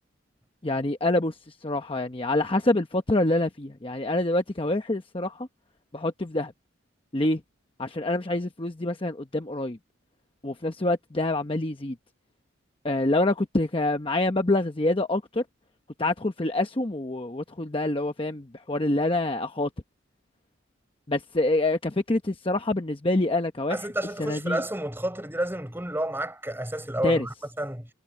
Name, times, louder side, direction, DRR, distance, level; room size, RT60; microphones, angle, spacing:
voice 1, 0.6-5.5 5.9-6.5 7.1-7.4 7.8-9.8 10.4-12.0 12.8-15.4 16.0-19.7 21.1-23.8 24.2-24.6 27.0-27.3, left 2 dB, 25° left, 0.9 m, -26 dB
voice 2, 23.7-27.9, right 1 dB, 10° right, 6.7 m, -30 dB
head